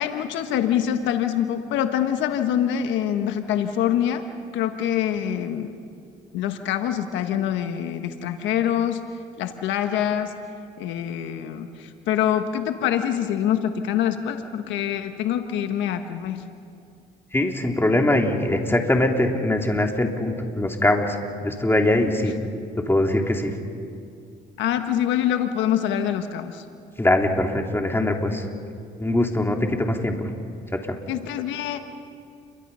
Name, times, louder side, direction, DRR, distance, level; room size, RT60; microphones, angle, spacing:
voice 1, 0.0-4.2 4.5-5.8 6.3-9.0 9.4-10.3 10.8-16.5 24.6-26.6 31.1-31.8, left 10 dB, 80° left, 7 dB, 1.4 m, -25 dB
voice 2, 17.3-22.3 22.8-23.5 27.0-28.4 29.0-30.1, left 1 dB, 10° left, 2 dB, 3.4 m, -22 dB
29.5 x 23.5 x 5.6 m, 2.4 s
supercardioid pair, 65°, 19 cm